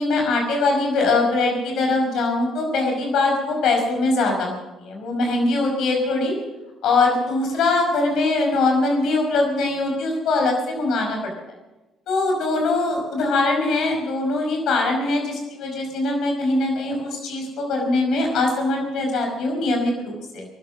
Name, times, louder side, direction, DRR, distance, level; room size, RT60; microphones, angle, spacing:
voice 1, 0.0-6.3 6.8-11.2 12.1-20.5, left 2 dB, 65° left, 2 dB, 5.3 m, -22 dB
19.5 x 12.0 x 6.3 m, 1.1 s
hypercardioid pair, 55°, 0 cm